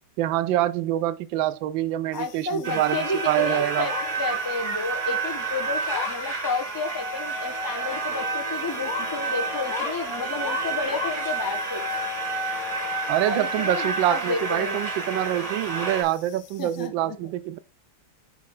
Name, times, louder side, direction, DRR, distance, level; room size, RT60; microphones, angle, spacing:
voice 1, 0.2-3.9 13.1-17.6, right 13 dB, 85° right, 1.3 m, -25 dB
sound 1, 2.1-16.9, left 8 dB, 85° left, 1.6 m, -42 dB
voice 2, 2.1-12.0 13.3-14.8 16.6-17.2, left 4 dB, 20° left, 0.5 m, -31 dB
sound 2, 2.6-16.0, right 3 dB, 30° right, 0.8 m, -30 dB
6.5 x 4.9 x 3.7 m
omnidirectional pair, 2.1 m